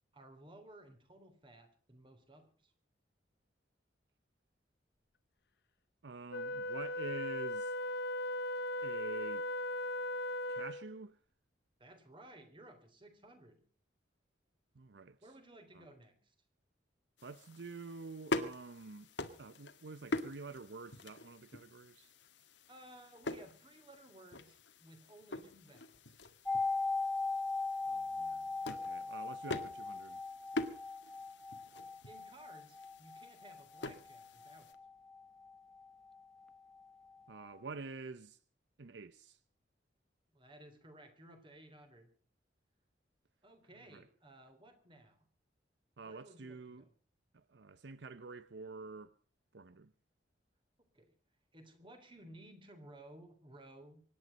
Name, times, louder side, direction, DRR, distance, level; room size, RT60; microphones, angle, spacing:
voice 1, 0.1-2.7 11.8-13.6 15.2-16.3 22.7-26.1 32.0-34.8 40.3-42.1 43.4-45.2 46.0-46.9 50.9-51.1 51.5-54.0, right 1 dB, 25° right, 3.4 m, -57 dB
voice 2, 6.0-7.7 8.8-9.5 10.5-11.2 14.8-15.2 15.7-15.8 17.2-19.1 19.4-22.1 27.9-30.2 37.3-38.4 38.8-39.4 43.8-44.1 46.0-46.8 47.3-49.1 49.5-49.9, right 3 dB, 70° right, 0.7 m, -48 dB
Wind instrument woodwind instrument, 6.3-10.9, left 1 dB, 60° left, 0.7 m, -38 dB
sound 1, 17.2-34.7, left 2 dB, 80° left, 1.8 m, -45 dB
sound 2, 26.4-36.2 36.5-36.6, left 3 dB, 5° left, 0.7 m, -39 dB
25.0 x 11.0 x 5.2 m
head